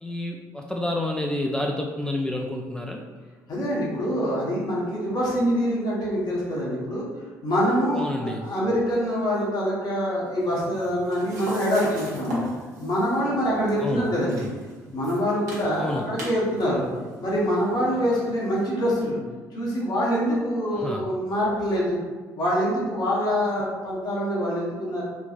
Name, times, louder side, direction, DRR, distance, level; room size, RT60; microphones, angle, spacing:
voice 1, 0.0-3.0 8.0-8.5 13.8-14.1 15.8-16.1 20.7-21.0, left 1 dB, 10° left, 0 dB, 0.3 m, -29 dB
voice 2, 3.5-7.0 7.4-12.3 12.8-14.4 14.9-16.9 17.2-19.2 19.5-22.0 22.4-25.0, equal, 50° left, -7 dB, 1.1 m, -25 dB
sound 1, 10.4-18.7, equal, 85° right, 0.8 m, -38 dB
3.7 x 2.3 x 2.4 m, 1.4 s
hypercardioid pair, 50°, 9 cm